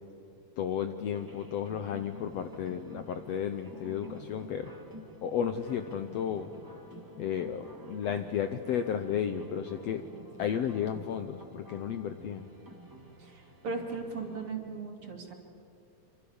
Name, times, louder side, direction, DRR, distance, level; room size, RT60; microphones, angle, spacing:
voice 1, 0.6-4.7 5.2-6.5 7.2-10.0 10.4-12.5, left 8 dB, 70° left, 9 dB, 1.7 m, -33 dB
sound 1, 1.1-14.5, equal, 10° right, 1.3 m, -50 dB
voice 2, 13.2-15.3, right 4 dB, 45° right, 3 dB, 3.2 m, -38 dB
26.0 x 26.0 x 7.1 m, 2.7 s
omnidirectional pair, 3.7 m